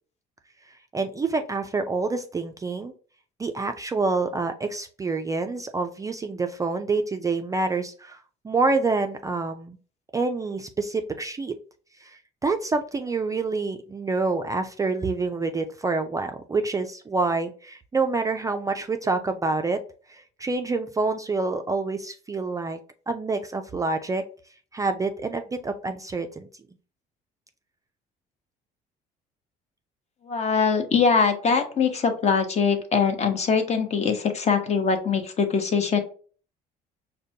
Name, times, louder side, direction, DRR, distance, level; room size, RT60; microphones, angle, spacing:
voice 1, 0.9-2.9 3.4-8.2 8.4-9.8 10.1-11.5 12.0-19.8 20.1-22.8 23.1-24.2 24.7-26.5, right 3 dB, 20° right, 6 dB, 0.3 m, -27 dB
voice 2, 30.2-36.0, left 5 dB, 40° left, 6 dB, 0.8 m, -22 dB
5.0 x 2.2 x 2.7 m, 0.41 s
cardioid pair, 110°, 17 cm